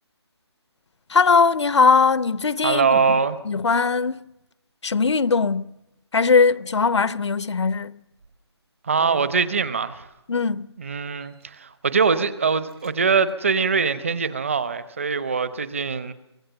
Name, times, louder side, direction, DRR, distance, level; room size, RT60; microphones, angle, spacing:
voice 1, 1.1-3.0 3.4-4.2 4.8-5.7 6.1-8.0 10.3-10.7, left 4 dB, 80° left, 0.7 m, -20 dB
voice 2, 2.6-3.4 8.8-10.1 10.8-16.1, right 5 dB, 30° right, 0.8 m, -22 dB
sound 1, 8.1-8.4 9.0-10.1 11.1-11.5 12.1-12.2 12.4-13.0 13.2-13.4 13.9-14.5, right 4 dB, 60° right, 4.2 m, -43 dB
25.0 x 17.0 x 7.8 m
hypercardioid pair, 175°, 14 cm